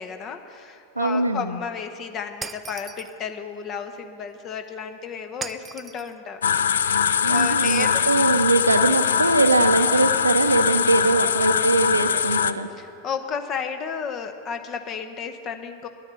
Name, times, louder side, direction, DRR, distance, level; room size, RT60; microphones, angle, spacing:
voice 1, 0.0-7.0 7.3-8.0 11.1-11.5 12.8-15.9, left 6 dB, 30° left, 7 dB, 1.0 m, -33 dB
voice 2, 1.0-1.6 7.2-12.7, right 2 dB, 80° right, 8 dB, 0.7 m, -21 dB
Shatter, 2.4-3.2 5.4-6.1, right 5 dB, 15° right, 0.4 m, -37 dB
sound 1, 6.4-12.5, left 7 dB, 65° left, 0.4 m, -22 dB
10.5 x 10.0 x 8.3 m, 2.5 s
figure-of-eight pair, 90°, 0 cm